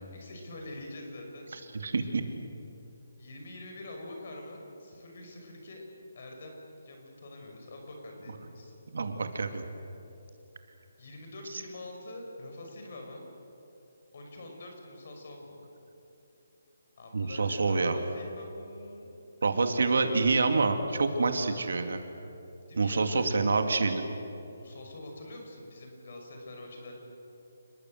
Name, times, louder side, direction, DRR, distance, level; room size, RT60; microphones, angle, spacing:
voice 1, 0.1-1.7 3.2-5.8 6.1-8.7 11.0-13.3 14.1-15.6 17.0-19.1 19.5-20.3 22.7-23.6 24.4-26.9, left 1 dB, 40° left, 2 dB, 5.8 m, -45 dB
voice 2, 1.8-2.2 8.9-9.6 17.1-18.0 19.4-22.0 22.8-24.0, right 3 dB, 60° right, 6 dB, 2.5 m, -27 dB
29.5 x 21.0 x 8.0 m, 2.8 s
hypercardioid pair, 180°, 0 cm